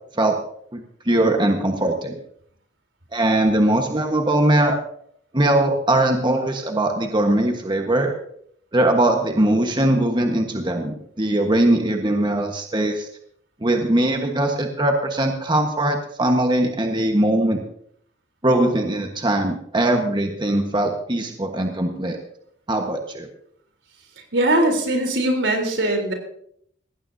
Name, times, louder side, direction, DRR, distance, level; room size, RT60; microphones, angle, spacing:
voice 1, 0.7-2.2 3.1-4.8 5.3-8.1 8.7-13.1 13.6-17.6 18.4-22.2 22.7-23.3, right 1 dB, 25° right, 3 dB, 1.3 m, -20 dB
voice 2, 24.3-26.1, right 1 dB, 85° right, 4 dB, 3.7 m, -20 dB
18.0 x 16.0 x 2.8 m, 0.66 s
head